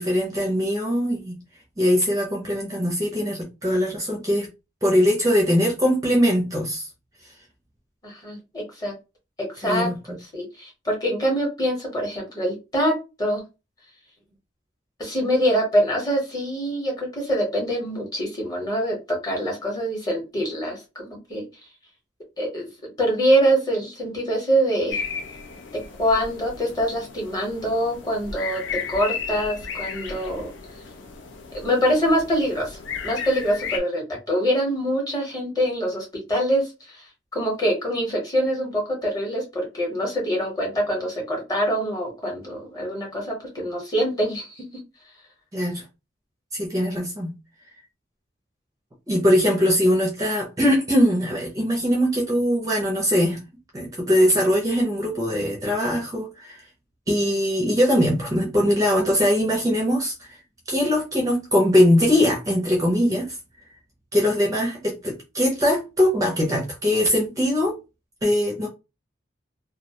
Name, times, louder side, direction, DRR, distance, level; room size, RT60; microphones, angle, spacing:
voice 1, 0.0-1.3 1.8-4.5 4.8-6.9 9.6-10.0 45.5-45.8 46.5-47.4 49.1-53.4 53.7-56.6 57.1-60.4 60.7-63.4 64.1-67.8 68.2-68.7, equal, 15° right, 0.5 m, -21 dB
voice 2, 8.0-8.9 9.4-12.9 13.2-13.4 15.0-21.4 22.4-25.0 26.0-28.6 28.9-30.5 31.5-32.8 33.0-37.0 37.3-44.6, equal, 20° left, 0.8 m, -24 dB
sound 1, 24.9-33.8, left 6 dB, 75° left, 0.4 m, -34 dB
2.3 x 2.1 x 2.7 m
head